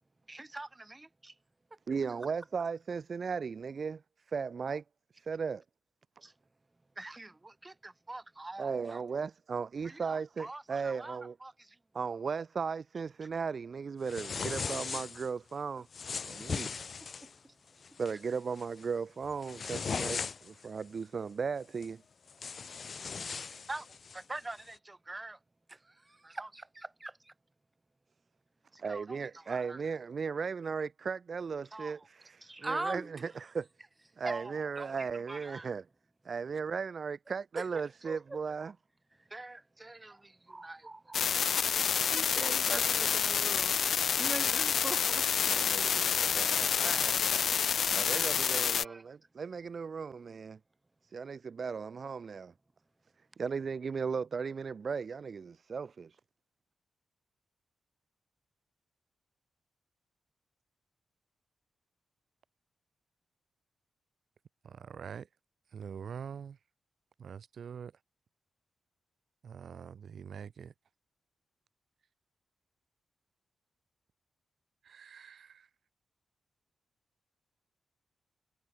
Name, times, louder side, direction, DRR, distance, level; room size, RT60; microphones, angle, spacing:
voice 1, 0.3-1.3 6.2-6.3 7.0-9.0 9.8-11.8 16.5-16.8 17.2-17.3 18.1-18.2 23.7-25.4 25.7-27.3 28.7-29.8 31.7-32.0 32.4-33.1 34.2-35.7 37.6-37.7 38.0-38.7 39.3-45.6 46.3-47.6 48.8-49.0, right 2 dB, 20° right, 2.3 m, -43 dB
voice 2, 1.9-4.0 4.3-4.8 5.1-5.6 8.6-11.3 11.9-15.9 16.2-16.7 18.0-22.0 28.8-33.7 34.2-35.8 36.2-38.7 45.4-47.4 47.9-50.6 51.1-52.5 53.4-56.2, right 5 dB, 45° right, 0.4 m, -36 dB
sound 1, 14.1-15.3 15.9-17.3 17.8-18.1 18.6-18.8 19.2-20.6 21.8-21.9 22.3-24.2, left 5 dB, 50° left, 2.3 m, -38 dB
sound 2, 41.1-48.8, left 7 dB, 65° left, 0.7 m, -28 dB
voice 3, 64.6-65.3 65.7-66.6 67.2-67.9 69.4-70.7 74.8-75.7, right 7 dB, 65° right, 1.5 m, -44 dB
wide cardioid pair, 115°, 0 cm